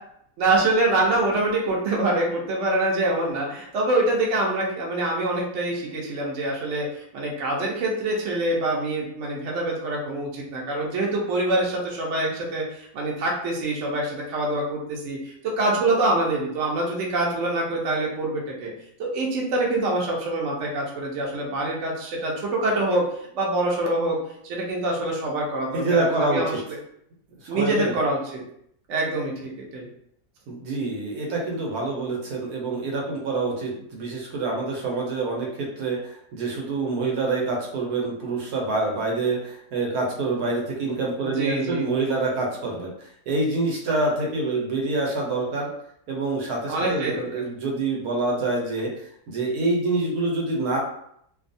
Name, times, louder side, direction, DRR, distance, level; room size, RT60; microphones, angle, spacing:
voice 1, 0.4-18.7 19.0-23.0 23.3-24.2 24.4-26.5 27.5-28.4 28.9-29.9 41.2-41.9 46.7-47.5, right 2 dB, 60° right, -2 dB, 0.9 m, -25 dB
voice 2, 25.7-26.6 27.5-27.9 30.5-42.9 43.3-45.7 46.1-48.9 49.3-50.8, right 3 dB, 75° right, -2 dB, 1.2 m, -26 dB
2.7 x 2.3 x 2.5 m, 0.71 s
omnidirectional pair, 1.7 m